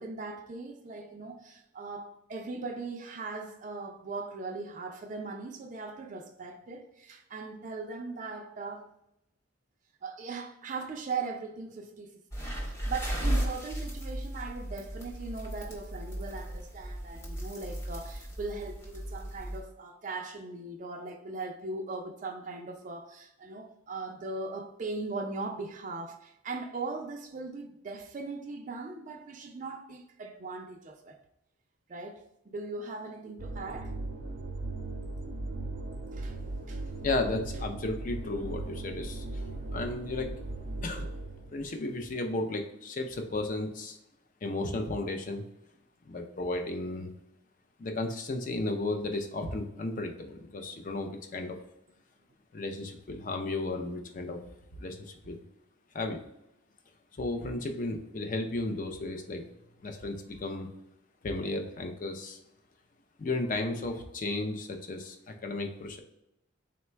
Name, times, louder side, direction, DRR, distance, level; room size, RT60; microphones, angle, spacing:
voice 1, 0.0-8.9 10.0-31.2 31.9-33.9 36.1-36.4 36.7-36.8, right 3 dB, 40° right, 0.4 m, -39 dB
sound 1, 12.3-19.6, equal, 15° left, 0.8 m, -35 dB
sound 2, 33.4-41.7, right 2 dB, 80° right, 0.7 m, -38 dB
voice 2, 37.0-39.4 39.7-40.3 40.8-41.1 41.5-44.0 44.4-45.4 46.1-47.1 47.8-51.6 52.5-54.4 54.8-55.4 55.9-56.2 57.2-59.4 59.8-60.7 61.2-62.4 63.2-66.0, left 2 dB, 40° left, 0.5 m, -34 dB
3.9 x 2.2 x 4.3 m
head